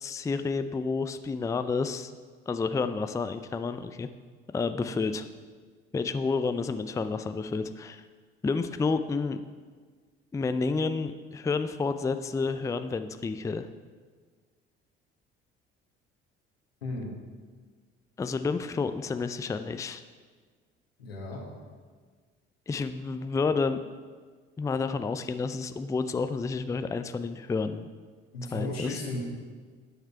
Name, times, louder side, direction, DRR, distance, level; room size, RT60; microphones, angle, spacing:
voice 1, 0.0-2.1 2.5-4.1 4.5-5.3 5.9-8.0 8.4-9.4 10.3-13.7 18.2-20.0 22.7-23.8 24.6-27.8 28.5-29.0, left 4 dB, 10° left, 10 dB, 0.4 m, -30 dB
voice 2, 21.0-21.4 28.3-29.2, left 2 dB, 85° left, -2 dB, 1.6 m, -35 dB
9.4 x 6.7 x 4.5 m, 1.5 s
figure-of-eight pair, 55°, 30 cm